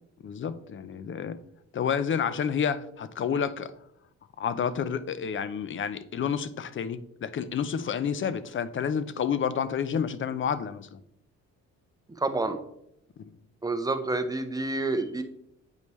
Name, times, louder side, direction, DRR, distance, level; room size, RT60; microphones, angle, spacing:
voice 1, 0.2-1.4 1.7-3.7 4.4-11.0 13.2-13.3, left 7 dB, 40° left, 14 dB, 0.5 m, -30 dB
voice 2, 12.2-12.6 13.6-15.2, right 2 dB, 10° right, 8 dB, 0.8 m, -28 dB
8.2 x 5.2 x 3.1 m, 0.78 s
cardioid pair, 90°, 30 cm